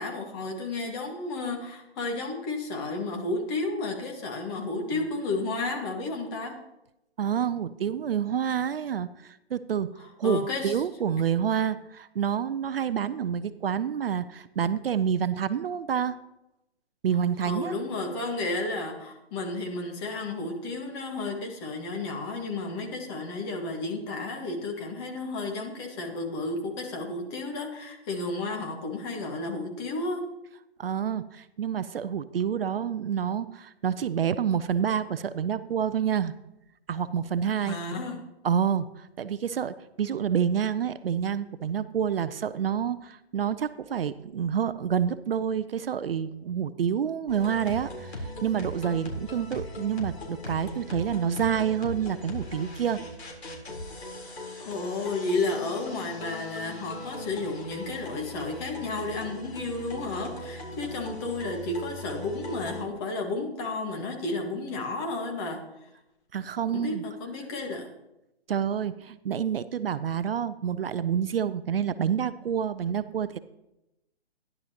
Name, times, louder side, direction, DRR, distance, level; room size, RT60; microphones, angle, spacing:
voice 1, 0.0-6.6 10.0-10.7 17.4-30.2 37.6-38.2 54.6-65.9 66.7-67.9, left 2 dB, 20° left, 2 dB, 1.6 m, -32 dB
voice 2, 7.2-9.9 10.2-16.2 17.0-17.7 30.8-36.3 36.9-37.8 38.4-53.0 66.3-67.0 68.5-73.4, right 8 dB, 60° right, 13 dB, 0.5 m, -28 dB
sound 1, 47.3-62.8, left 1 dB, 75° left, 3.7 m, -39 dB
14.0 x 11.0 x 2.9 m, 0.92 s
hypercardioid pair, 150°, 33 cm